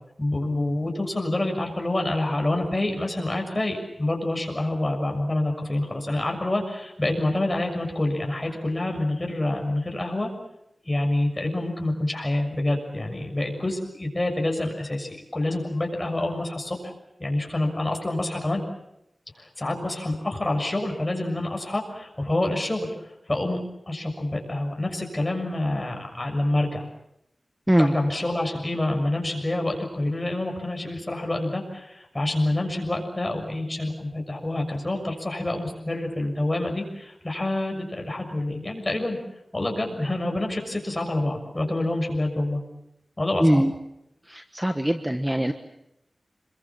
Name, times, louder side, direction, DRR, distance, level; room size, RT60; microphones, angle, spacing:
voice 1, 0.2-10.3 10.9-16.9 17.2-18.6 19.4-22.9 23.3-23.6 23.9-26.9 27.8-39.2 39.5-42.6 43.2-43.6, left 1 dB, 25° left, 3 dB, 6.5 m, -27 dB
voice 2, 43.4-43.7 44.3-45.5, equal, 10° right, 6 dB, 1.3 m, -21 dB
27.5 x 22.5 x 7.3 m, 0.81 s
wide cardioid pair, 90°, 0 cm